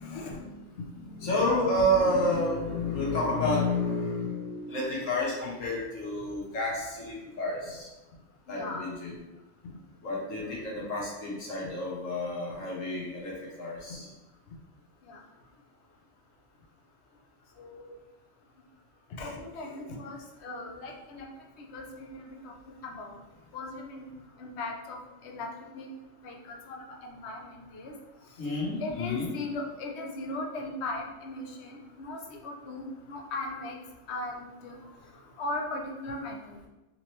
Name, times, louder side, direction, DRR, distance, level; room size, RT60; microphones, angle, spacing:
voice 1, 0.0-7.9 8.5-9.1 10.0-14.1 28.4-29.4, left 1 dB, 85° left, -4 dB, 1.5 m, -30 dB
voice 2, 1.4-1.8 8.5-8.9 15.1-15.2 17.6-17.9 19.2-21.3 21.6-22.5 22.8-23.1 23.5-24.1 24.4-25.0 25.2-25.5 25.7-25.9 26.2-27.9 28.8-33.8 34.1-34.8 35.4-36.4, left 2 dB, 65° left, 1 dB, 0.9 m, -38 dB
3.8 x 3.0 x 3.0 m, 1.0 s
omnidirectional pair, 1.3 m